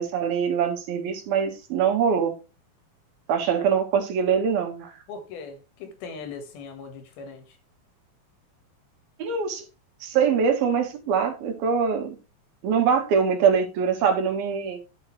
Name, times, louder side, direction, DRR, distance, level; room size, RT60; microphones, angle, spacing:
voice 1, 0.0-2.3 3.3-4.9 9.2-9.6 10.0-12.2 12.6-14.8, right 6 dB, 80° right, 3.4 m, -23 dB
voice 2, 5.1-7.6, left 5 dB, 85° left, 3.5 m, -39 dB
11.5 x 5.6 x 3.2 m
omnidirectional pair, 4.2 m